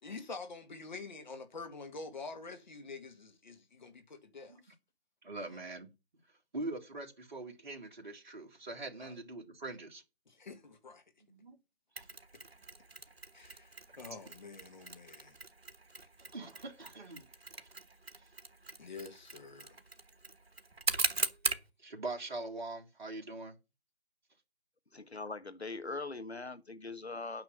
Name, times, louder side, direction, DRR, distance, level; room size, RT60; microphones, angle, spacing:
voice 1, 0.0-4.7 5.4-5.6 9.0-9.2 10.3-11.0 13.3-15.4 18.8-19.8, left 4 dB, 45° left, 1.9 m, -47 dB
voice 2, 5.2-5.9 6.5-10.0 11.3-11.6 16.3-17.3 21.8-23.6, right 2 dB, 50° right, 2.1 m, -42 dB
Mechanisms, 12.0-21.7, right 3 dB, 75° right, 1.2 m, -40 dB
voice 3, 24.9-27.4, left 3 dB, 85° left, 1.4 m, -41 dB
9.2 x 5.8 x 7.3 m
figure-of-eight pair, 155°, 31 cm